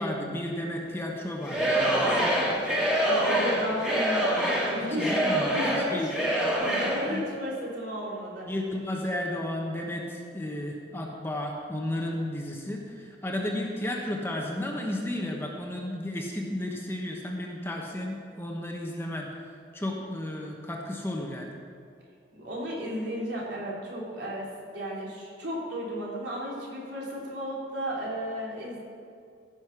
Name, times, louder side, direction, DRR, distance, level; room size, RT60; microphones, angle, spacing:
voice 1, 0.0-2.3 4.8-5.6 5.9-6.1 7.0-7.2 8.5-19.3 19.7-21.5, left 1 dB, 10° left, 0 dB, 1.1 m, -33 dB
Singing / Crowd, 1.4-7.1, right 1 dB, 5° right, 1.8 m, -26 dB
voice 2, 3.0-6.1 6.5-8.4 22.3-24.5 24.7-28.8, equal, 75° right, -5 dB, 3.6 m, -34 dB
16.0 x 6.5 x 6.1 m, 2.4 s
head